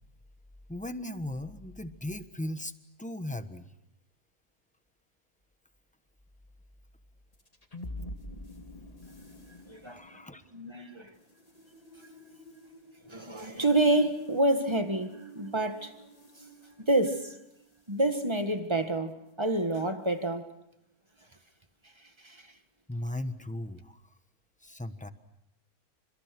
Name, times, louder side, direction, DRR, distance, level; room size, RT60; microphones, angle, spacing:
voice 1, 0.7-2.7 3.0-3.7 9.8-10.4 22.9-24.0 24.6-25.1, left 1 dB, 5° left, 1.1 m, -37 dB
sound 1, 7.3-17.8, equal, 25° left, 2.2 m, -48 dB
voice 2, 9.7-10.0 10.5-11.1 13.1-15.9 16.9-17.3 17.9-20.5 22.2-22.4, right 1 dB, 20° right, 1.7 m, -28 dB
29.0 x 27.0 x 6.1 m
omnidirectional pair, 1.5 m